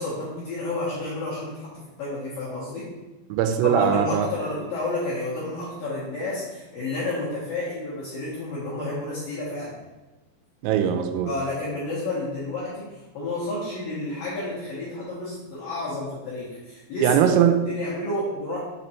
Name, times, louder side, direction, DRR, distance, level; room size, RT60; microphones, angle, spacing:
voice 1, 0.0-2.9 3.6-9.7 11.2-17.2 17.7-18.6, left 2 dB, 65° left, -8 dB, 2.3 m, -30 dB
voice 2, 3.3-4.3 10.6-11.3 17.0-17.6, right 9 dB, 85° right, 6 dB, 3.2 m, -20 dB
7.4 x 4.2 x 4.4 m, 1.1 s
omnidirectional pair, 6.0 m